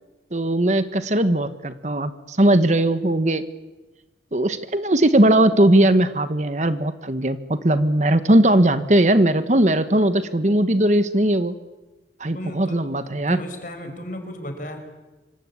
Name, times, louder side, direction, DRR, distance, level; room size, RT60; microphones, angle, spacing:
voice 1, 0.3-3.4 4.3-11.5 12.2-13.4, right 1 dB, 40° right, 11 dB, 1.3 m, -19 dB
voice 2, 12.3-14.8, left 1 dB, 50° left, 6 dB, 5.1 m, -35 dB
26.5 x 25.5 x 8.5 m, 1.2 s
head